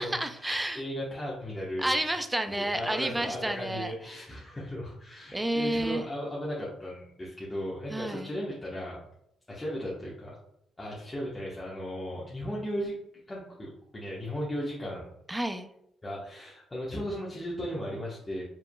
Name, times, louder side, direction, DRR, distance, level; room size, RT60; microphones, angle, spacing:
voice 1, 0.0-0.8 1.8-3.9 5.3-6.0 7.9-8.3 15.3-15.7, right 1 dB, 10° right, 7 dB, 0.5 m, -30 dB
voice 2, 0.7-1.9 2.5-9.0 9.5-10.4 10.8-12.9 13.3-15.0 16.0-18.4, equal, 20° left, -6 dB, 1.1 m, -36 dB
5.0 x 3.6 x 2.3 m, 0.76 s
cardioid pair, 90°, 0 cm